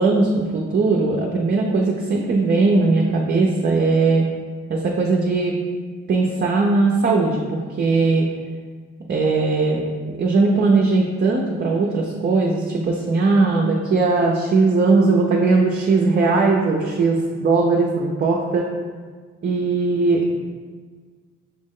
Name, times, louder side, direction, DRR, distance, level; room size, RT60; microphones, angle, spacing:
voice 1, 0.0-4.3 4.7-5.5 6.1-8.3 9.1-9.8 10.2-18.7 19.4-20.4, right 3 dB, 35° right, -2 dB, 0.5 m, -19 dB
5.7 x 2.1 x 3.6 m, 1.5 s
cardioid pair, 90°, 30 cm